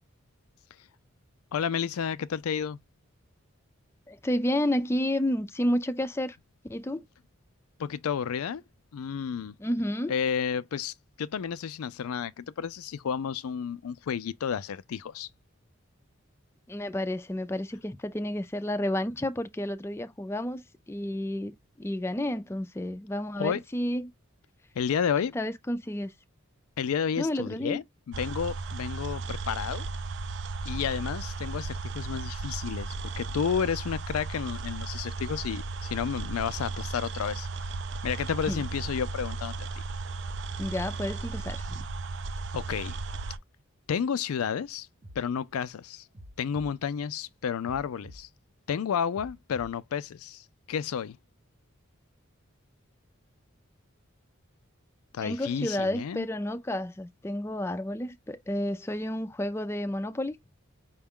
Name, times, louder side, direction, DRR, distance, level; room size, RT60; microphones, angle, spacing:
voice 1, 1.5-2.8 7.8-8.6 8.9-9.5 10.1-15.3 23.4-23.6 24.8-25.4 26.8-29.9 30.6-37.5 38.0-39.8 42.5-43.0 43.9-44.9 45.2-46.0 46.4-48.3 48.7-51.2 55.1-56.3, left 7 dB, 90° left, 0.4 m, -31 dB
voice 2, 4.1-6.4 6.7-7.0 9.6-10.1 16.7-24.1 25.3-26.1 27.2-27.8 38.5-38.6 40.6-41.8 55.2-60.4, left 1 dB, 10° left, 0.4 m, -31 dB
sound 1, 28.1-43.4, right 3 dB, 55° right, 0.5 m, -35 dB
sound 2, 45.0-45.2 46.1-46.7 47.6-48.2 49.1-49.7, equal, 30° right, 0.7 m, -47 dB
5.2 x 2.2 x 3.6 m
head